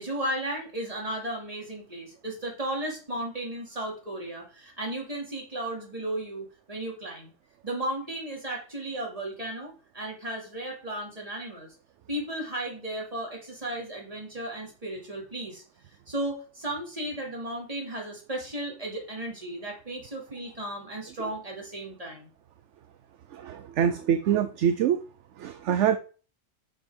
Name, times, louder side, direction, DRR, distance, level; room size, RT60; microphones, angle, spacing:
voice 1, 0.0-7.3 7.6-11.7 12.1-15.6 16.1-22.3, right 1 dB, 30° right, -2 dB, 3.0 m, -35 dB
voice 2, 23.3-25.0 25.4-26.0, right 9 dB, 70° right, 9 dB, 0.9 m, -25 dB
6.2 x 6.2 x 5.1 m, 0.38 s
omnidirectional pair, 1.3 m